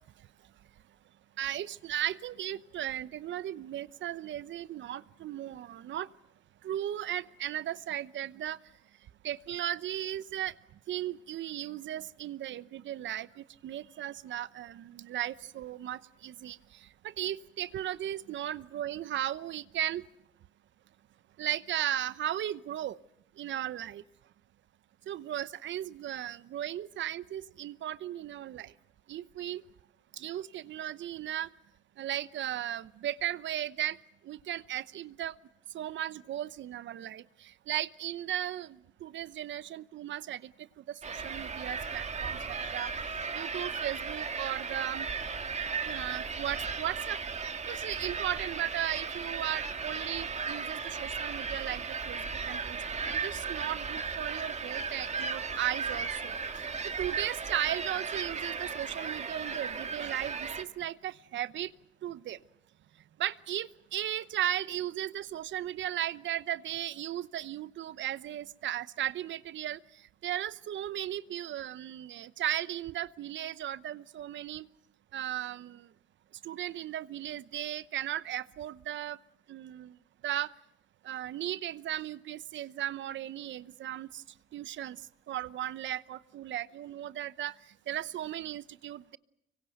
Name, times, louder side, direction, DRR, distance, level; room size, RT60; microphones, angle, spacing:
voice 1, 1.4-6.1 6.6-8.6 9.2-10.5 10.9-20.0 21.4-23.0 23.4-24.0 25.1-28.7 29.1-29.6 30.1-31.5 32.0-34.0 34.2-35.4 35.7-42.9 43.3-45.1 45.8-47.2 47.7-56.6 57.0-61.7 62.0-62.4 63.2-69.8 70.2-74.7 75.1-75.9 76.4-79.2 79.5-80.0 80.2-80.5 81.0-84.2 84.5-85.0 85.3-87.6 87.9-89.2, right 12 dB, 70° right, 17 dB, 0.9 m, -36 dB
sound 1, 41.0-60.6, right 5 dB, 35° right, 1.8 m, -36 dB
25.5 x 23.5 x 7.9 m, 0.78 s
cardioid pair, 90°, 20 cm